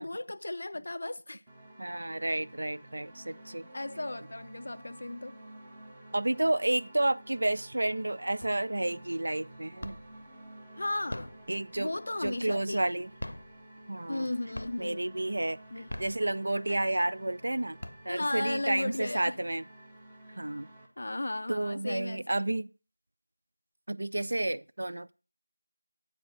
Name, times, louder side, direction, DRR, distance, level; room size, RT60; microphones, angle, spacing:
voice 1, 0.0-1.4 3.7-5.4 10.8-11.3 11.8-13.0 14.1-15.2 15.7-15.9 16.7-16.8 18.1-19.4 21.0-22.3, left 2 dB, 40° left, 0.4 m, -35 dB
sound 1, 1.5-20.9, right 1 dB, 5° right, 0.7 m, -52 dB
voice 2, 1.8-3.6 6.1-10.0 11.5-11.9 12.2-13.1 13.9-14.3 14.8-17.8 18.0-19.6 20.4-20.7 21.5-22.7 23.9-25.1, right 1 dB, 50° right, 0.4 m, -31 dB
sound 2, 8.4-8.9 9.3-10.3 10.9-12.7 13.1-14.2 14.5-15.1 15.7-16.8 17.3-17.4 17.6-18.5, left 1 dB, 80° left, 0.7 m, -42 dB
8.6 x 4.9 x 6.1 m
figure-of-eight pair, 175°, 0 cm